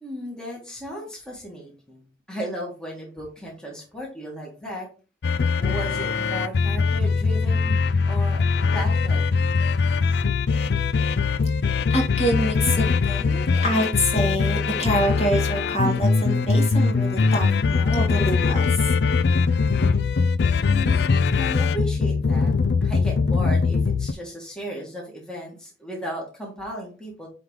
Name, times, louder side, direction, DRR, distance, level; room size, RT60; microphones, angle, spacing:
voice 1, 0.0-2.0 2.3-4.9 5.6-7.8 8.0-8.4 8.7-9.4 20.6-22.5 22.8-27.3, equal, 5° left, 1.7 m, -35 dB
sound 1, 5.2-24.1, left 4 dB, 65° left, 0.4 m, -21 dB
voice 2, 11.9-18.9, equal, 35° left, 2.5 m, -26 dB
9.6 x 3.6 x 3.2 m
head